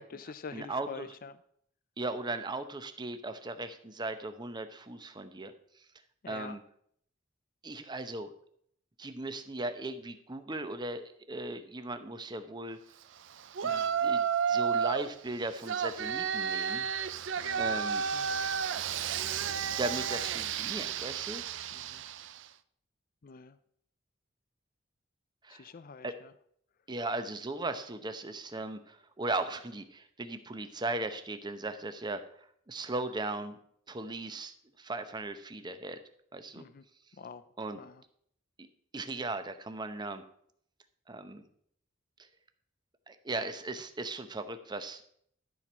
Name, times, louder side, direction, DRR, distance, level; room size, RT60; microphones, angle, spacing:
voice 1, 0.0-1.4 6.2-6.6 13.7-14.1 17.4-18.5 21.7-22.0 23.2-23.6 25.5-26.3 36.6-36.8 37.2-37.4 37.8-38.0, left 4 dB, 45° left, 13 dB, 0.5 m, -47 dB
voice 2, 0.5-1.1 2.0-5.5 6.3-6.6 7.6-8.3 9.0-12.8 13.6-16.9 17.6-18.0 19.6-21.4 25.4-25.7 26.0-26.1 26.9-32.2 32.7-33.6 33.9-36.0 36.3-36.6 37.6-37.8 38.6-38.7 38.9-40.2 41.1-41.4 43.1-45.1, right 2 dB, 20° right, 9 dB, 0.8 m, -37 dB
Yell, 13.6-15.1 15.7-22.4, right 7 dB, 65° right, 0.5 m, -32 dB
13.5 x 4.5 x 6.2 m, 0.67 s
head